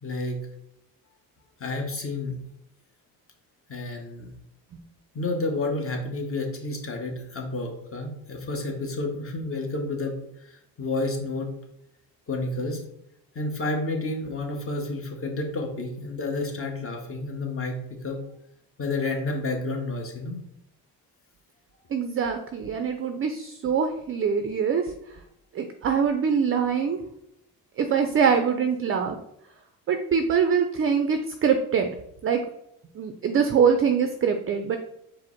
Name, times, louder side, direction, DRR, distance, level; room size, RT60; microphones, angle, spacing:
voice 1, 0.0-0.4 1.6-2.4 3.7-4.3 5.1-11.6 12.3-12.8 13.3-18.2 18.8-20.4, left 2 dB, 35° left, 2 dB, 1.0 m, -30 dB
voice 2, 21.9-24.8 25.5-27.0 27.8-29.2 29.9-31.9 32.2-32.4 32.9-34.8, right 6 dB, 35° right, 6 dB, 0.4 m, -23 dB
4.8 x 2.1 x 4.4 m, 0.78 s
cardioid pair, 85°, 40 cm